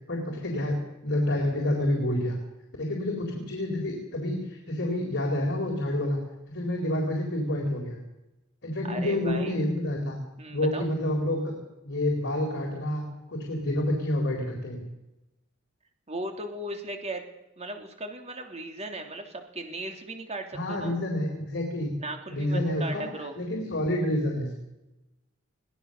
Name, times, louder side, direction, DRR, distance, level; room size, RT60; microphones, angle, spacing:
voice 1, 0.1-2.4 2.8-6.2 6.5-8.0 8.6-10.2 10.5-11.5 11.8-13.0 13.3-14.8 20.5-21.9 22.3-23.0 23.4-24.5, left 1 dB, 55° left, 1 dB, 4.1 m, -28 dB
voice 2, 8.8-9.5 10.4-10.8 16.1-17.2 17.6-21.0 22.0-23.3, right 2 dB, 30° right, 4 dB, 3.1 m, -37 dB
23.0 x 17.5 x 6.7 m, 0.95 s
head